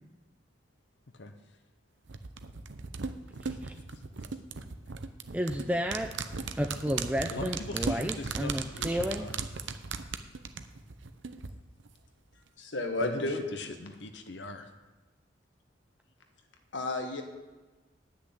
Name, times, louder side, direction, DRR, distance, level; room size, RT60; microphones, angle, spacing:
sound 1, 2.1-11.5 11.8-11.9, right 5 dB, 85° right, 0.8 m, -37 dB
voice 1, 5.3-6.1 6.6-9.3, equal, 10° right, 4 dB, 0.5 m, -31 dB
voice 2, 7.3-9.5 13.0-14.7, left 3 dB, 70° left, 6 dB, 0.8 m, -42 dB
voice 3, 12.6-13.4 16.7-17.2, left 2 dB, 90° left, 4 dB, 1.5 m, -31 dB
10.0 x 6.3 x 8.5 m, 1.3 s
head